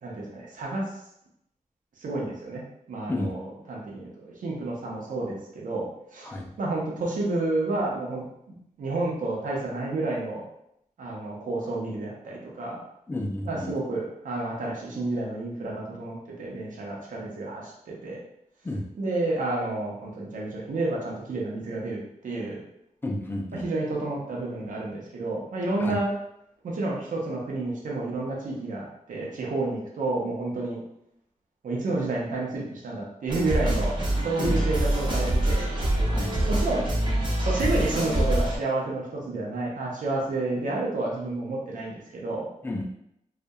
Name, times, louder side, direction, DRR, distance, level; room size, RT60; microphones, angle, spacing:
voice 1, 0.0-0.9 2.0-2.6 2.9-6.3 6.6-8.3 8.8-10.5 11.0-12.8 13.5-18.2 19.0-22.6 23.5-26.1 26.6-30.8 31.6-33.9 34.2-35.6 36.5-36.9 37.4-42.5, right 2 dB, 80° right, -3 dB, 0.6 m, -30 dB
voice 2, 13.1-13.8 18.6-18.9 23.0-23.7 25.8-26.0 34.4-34.6 36.1-36.4 42.6-42.9, left 1 dB, 15° left, 1 dB, 0.3 m, -31 dB
sound 1, 33.3-38.6, right 1 dB, 35° right, 0.6 m, -25 dB
2.7 x 2.1 x 2.2 m, 0.79 s
wide cardioid pair, 135°, 13 cm